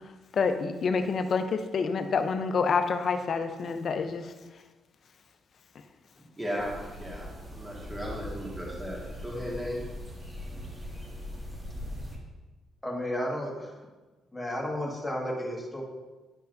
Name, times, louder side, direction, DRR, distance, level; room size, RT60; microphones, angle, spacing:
voice 1, 0.3-4.3, left 5 dB, 55° left, 8 dB, 0.6 m, -27 dB
voice 2, 6.4-6.7 7.0-7.3 7.5-9.0 9.2-9.8, equal, 10° right, -5 dB, 1.7 m, -35 dB
sound 1, 6.6-12.2, left 1 dB, 30° right, 1.9 m, -40 dB
voice 3, 12.8-13.8 14.3-15.8, left 1 dB, 10° left, -2 dB, 1.6 m, -33 dB
10.5 x 5.5 x 2.6 m, 1.2 s
cardioid pair, 90°, 0 cm